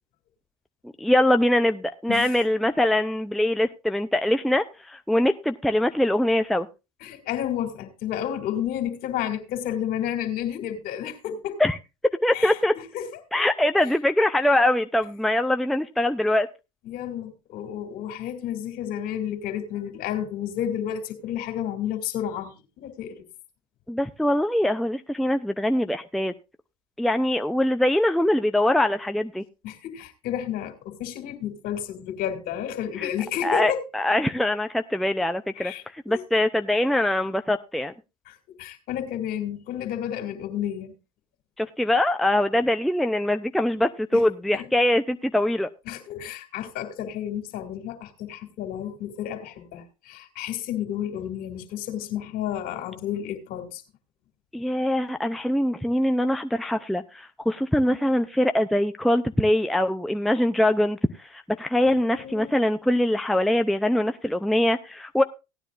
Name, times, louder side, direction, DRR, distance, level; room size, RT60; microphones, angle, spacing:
voice 1, 1.0-6.7 11.6-11.8 12.2-12.7 13.3-16.5 23.9-26.3 27.0-29.4 33.0-33.1 33.4-35.7 36.1-37.9 41.6-45.7 54.5-61.0 61.3-65.2, left 1 dB, ahead, 0.5 m, -23 dB
voice 2, 7.0-11.6 12.3-13.1 16.8-23.3 29.6-33.9 35.6-36.2 38.3-40.9 44.1-44.2 44.5-44.6 45.9-53.8 61.8-62.5, left 10 dB, 55° left, 2.6 m, -31 dB
17.0 x 9.8 x 2.5 m
hypercardioid pair, 85°, 17 cm